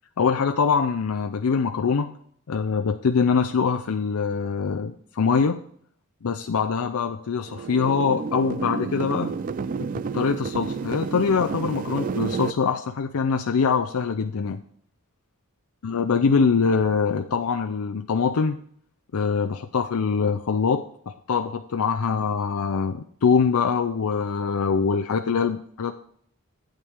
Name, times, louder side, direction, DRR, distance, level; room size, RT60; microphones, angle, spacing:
voice 1, 0.2-2.1 2.5-5.6 6.2-9.3 9.8-14.6 15.8-18.6 19.1-25.9, left 5 dB, 85° left, 6 dB, 0.5 m, -23 dB
sound 1, 7.5-12.5, right 5 dB, 40° right, 0.3 m, -30 dB
11.5 x 8.9 x 3.5 m, 0.63 s
head